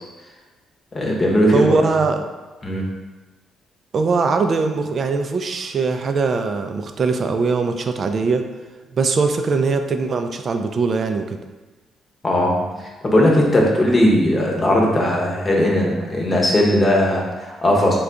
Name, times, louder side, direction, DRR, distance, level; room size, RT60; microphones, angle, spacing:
voice 1, 0.9-1.8 2.6-2.9 12.2-18.0, left 1 dB, 30° left, -1 dB, 0.8 m, -18 dB
voice 2, 1.5-2.2 3.9-8.4 8.9-11.4, right 4 dB, 50° right, 6 dB, 0.3 m, -21 dB
3.5 x 2.3 x 3.8 m, 1.2 s
cardioid pair, 90°, 0 cm